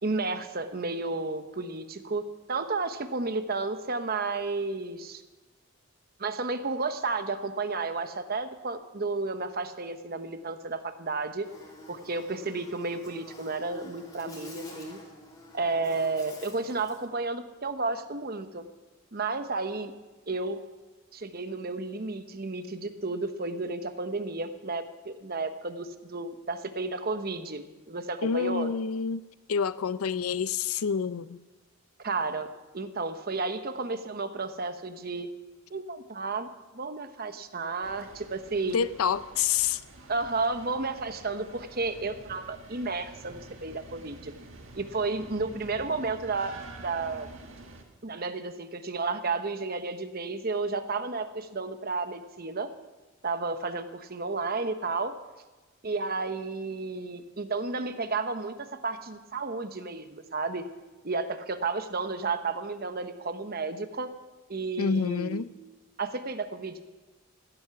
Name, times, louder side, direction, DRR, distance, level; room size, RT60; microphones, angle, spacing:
voice 1, 0.0-2.2 2.5-5.2 6.2-11.5 11.9-15.0 15.5-18.6 19.1-19.9 20.3-20.6 21.1-28.7 32.0-32.5 32.7-35.3 35.7-36.5 36.7-38.8 40.1-44.3 44.8-47.3 48.0-52.7 53.2-55.1 55.8-60.6 61.0-64.1 64.5-65.4 66.0-66.8, right 3 dB, 45° right, 9 dB, 1.0 m, -32 dB
Buzz, 11.4-17.1, left 2 dB, 15° left, 3.1 m, -47 dB
voice 2, 28.2-29.2 29.5-31.4 38.7-39.8 64.8-65.5, left 6 dB, 80° left, 16 dB, 0.5 m, -28 dB
sound 1, 37.8-47.8, right 2 dB, 60° right, 1.7 m, -48 dB
16.0 x 13.0 x 5.8 m, 1.2 s
head